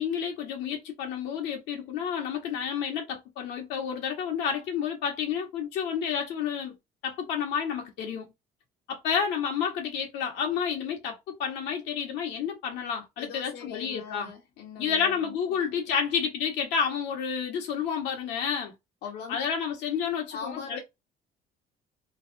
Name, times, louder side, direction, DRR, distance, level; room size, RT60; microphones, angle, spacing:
voice 1, 0.0-6.8 7.0-8.3 8.9-14.3 14.8-18.7 19.3-20.8, left 7 dB, 90° left, 1.1 m, -30 dB
voice 2, 13.2-16.0 19.0-19.5 20.3-20.8, left 6 dB, 70° left, 0.8 m, -41 dB
3.2 x 2.2 x 2.5 m
cardioid pair, 110°, 17 cm